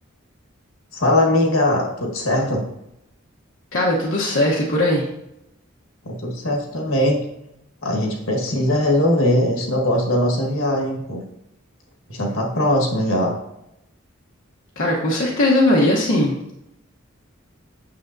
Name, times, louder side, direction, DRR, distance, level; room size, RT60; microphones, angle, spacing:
voice 1, 0.9-2.7 6.0-7.2 7.8-11.2 12.1-13.3, left 1 dB, 90° left, 0 dB, 1.5 m, -20 dB
voice 2, 3.7-5.1 14.8-16.3, left 1 dB, 65° left, -4 dB, 1.0 m, -19 dB
8.6 x 6.3 x 2.6 m, 0.85 s
head